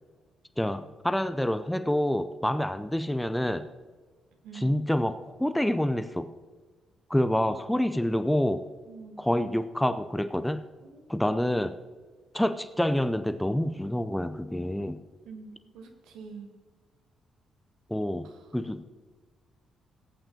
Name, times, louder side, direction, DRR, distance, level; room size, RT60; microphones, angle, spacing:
voice 1, 0.6-3.7 4.5-6.3 7.1-8.6 9.2-10.6 11.1-11.7 12.3-15.0 17.9-18.3 18.5-18.8, left 1 dB, 5° left, 11 dB, 0.6 m, -27 dB
voice 2, 4.4-4.7 7.3-7.6 8.9-9.2 10.8-11.1 15.2-16.5 18.2-18.5, right 5 dB, 65° right, 4 dB, 1.2 m, -46 dB
19.5 x 8.9 x 2.8 m, 1.4 s
figure-of-eight pair, 40°, 0 cm